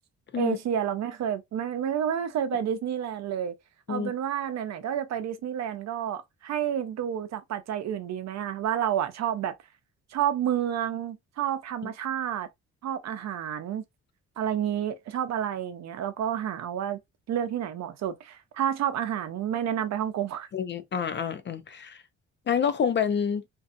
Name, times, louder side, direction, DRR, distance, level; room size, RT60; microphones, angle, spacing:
voice 1, 0.4-3.5 3.9-9.5 10.1-12.5 12.8-13.8 14.4-17.0 17.3-20.5, right 9 dB, 60° right, 0.6 m, -30 dB
voice 2, 20.5-22.0 22.5-23.4, left 7 dB, 40° left, 0.4 m, -28 dB
2.6 x 2.4 x 2.5 m
cardioid pair, 90°, 30 cm